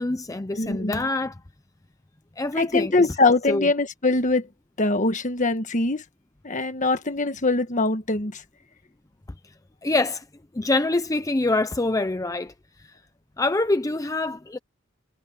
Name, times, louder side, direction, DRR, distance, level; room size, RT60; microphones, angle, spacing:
voice 1, 0.0-1.4 2.4-3.1 3.5-3.7 9.8-10.2 10.5-12.5 12.8-13.0 13.4-14.6, left 2 dB, 15° left, 0.6 m, -25 dB
voice 2, 0.5-1.1 2.6-4.5 4.8-6.0 6.4-8.4, left 3 dB, 40° left, 1.4 m, -23 dB
head